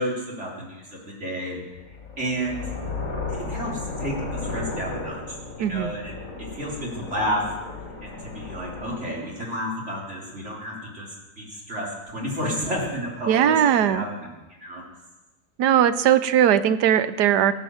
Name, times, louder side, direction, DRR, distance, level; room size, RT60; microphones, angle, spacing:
voice 1, 0.0-1.8 2.2-2.7 3.3-6.1 6.4-7.4 8.0-11.1 11.4-14.3 14.6-14.8, equal, 40° right, -4 dB, 4.1 m, -31 dB
sound 1, 1.8-9.0, left 3 dB, 50° left, 4.1 m, -34 dB
voice 2, 5.6-5.9 13.3-14.0 15.6-17.5, right 9 dB, 80° right, 13 dB, 1.3 m, -19 dB
18.5 x 8.9 x 7.8 m, 1.1 s
omnidirectional pair, 1.8 m